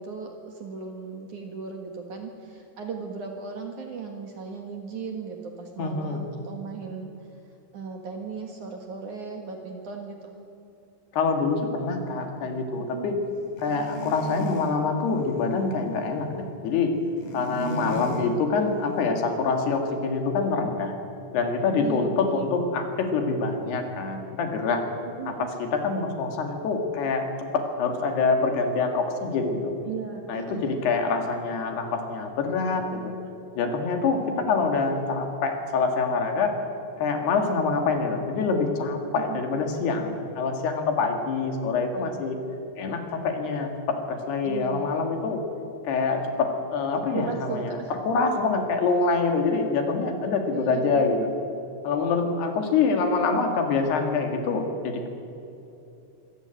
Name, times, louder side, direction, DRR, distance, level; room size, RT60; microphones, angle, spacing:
voice 1, 0.0-7.1 7.7-10.4 12.8-13.1 17.6-17.9 21.8-22.5 25.2-25.5 29.8-30.8 39.2-39.4 44.4-44.9 46.9-47.9 50.5-51.1, right 5 dB, 55° right, 3 dB, 2.5 m, -36 dB
voice 2, 5.8-6.2 11.1-13.2 13.6-17.0 17.3-21.0 21.3-24.8 25.3-29.8 30.3-33.1 33.6-36.6 37.0-42.4 42.8-45.4 45.8-51.3 51.8-55.1, left 4 dB, 70° left, 4 dB, 3.9 m, -25 dB
sound 1, 13.6-14.8 17.2-18.3, equal, 45° left, 4.0 m, -34 dB
25.0 x 15.0 x 9.0 m, 2.7 s
omnidirectional pair, 5.1 m